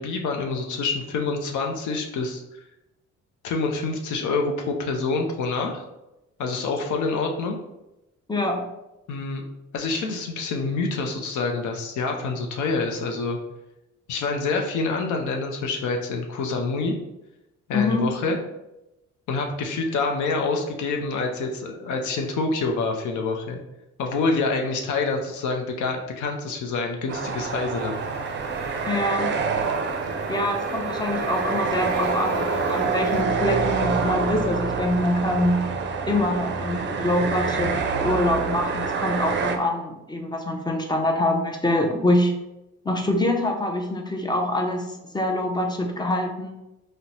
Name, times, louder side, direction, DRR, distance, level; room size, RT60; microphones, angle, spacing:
voice 1, 0.0-2.4 3.4-5.8 6.4-7.6 9.1-9.4 9.7-13.4 14.1-17.0 17.7-18.4 19.3-23.6 24.0-28.0, left 3 dB, 75° left, 3 dB, 0.6 m, -26 dB
voice 2, 8.3-8.7 17.7-18.2 28.9-29.4 30.3-35.7 36.1-42.3 42.8-46.5, left 1 dB, 15° left, 3 dB, 0.5 m, -25 dB
sound 1, 27.1-39.6, right 5 dB, 40° right, 0.5 m, -27 dB
sound 2, 27.7-33.2, left 2 dB, 35° left, 1.0 m, -38 dB
3.9 x 2.1 x 2.8 m, 0.92 s
cardioid pair, 90°, 30 cm